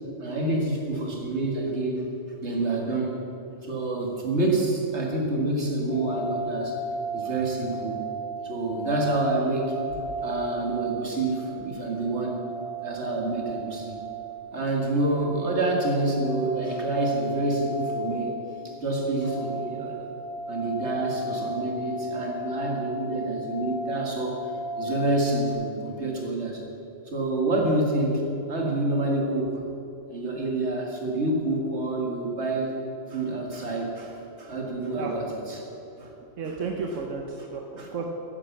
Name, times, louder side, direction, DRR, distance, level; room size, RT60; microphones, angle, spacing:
voice 1, 0.2-2.0 2.4-3.2 3.6-6.8 7.1-8.0 8.4-9.8 10.2-12.4 12.8-14.0 14.5-20.1 20.5-24.4 24.8-26.6 27.1-29.6 30.1-32.8 33.1-35.7 36.0-36.1 37.8-37.9, right 2 dB, 65° right, 0 dB, 2.3 m, -27 dB
sound 1, 5.9-25.5, right 1 dB, 65° left, 3.9 m, -35 dB
voice 2, 36.4-38.0, right 4 dB, 85° right, 1 dB, 1.3 m, -33 dB
11.0 x 9.9 x 7.2 m, 3.0 s
omnidirectional pair, 1.3 m